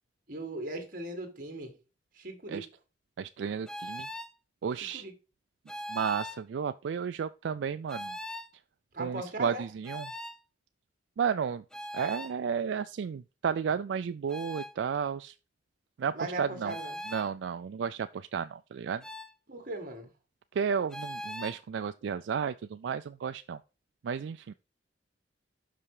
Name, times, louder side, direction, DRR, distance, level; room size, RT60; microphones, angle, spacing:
voice 1, 0.3-1.8 2.1-2.7 4.9-5.1 8.9-9.6 16.1-17.0 19.5-20.1, right 2 dB, 50° right, 1.9 m, -38 dB
voice 2, 3.2-4.1 4.6-5.0 5.9-8.2 9.0-10.1 11.2-11.6 11.9-15.3 16.0-16.7 17.1-19.0 20.5-23.6 24.0-24.5, right 7 dB, 80° right, 0.3 m, -33 dB
sound 1, 3.7-4.3 5.7-6.4 7.9-8.5 9.8-10.4 11.7-12.3 14.3-14.7 16.7-17.3 19.0-19.3 20.9-21.6, left 1 dB, 5° left, 0.4 m, -40 dB
5.9 x 5.5 x 4.8 m
head